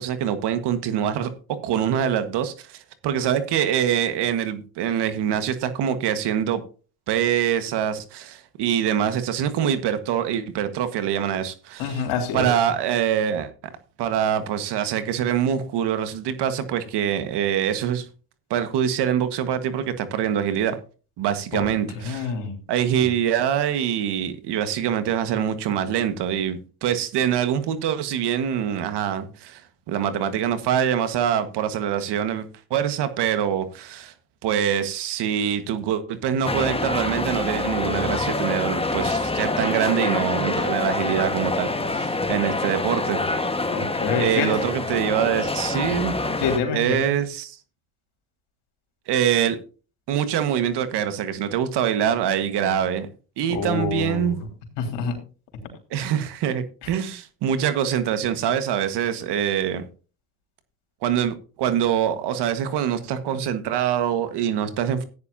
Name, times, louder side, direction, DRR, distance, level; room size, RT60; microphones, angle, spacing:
voice 1, 0.0-6.6 7.1-12.0 12.3-13.5 14.0-18.1 18.5-20.8 21.2-22.3 22.7-29.6 29.9-32.4 32.7-34.1 34.4-43.2 44.1-46.2 46.7-47.6 49.1-49.6 50.1-53.1 53.4-54.4 55.9-59.8 61.0-65.0, right 9 dB, 75° right, 1.6 m, -24 dB
voice 2, 11.8-12.5 21.5-21.7 22.0-22.5 23.0-23.1 43.7-44.5 46.4-47.1 53.5-54.3 54.8-55.1, left 5 dB, 85° left, 3.5 m, -26 dB
sound 1, 36.4-46.6, left 2 dB, 15° left, 1.5 m, -26 dB
14.5 x 9.8 x 2.7 m
supercardioid pair, 70°, 41 cm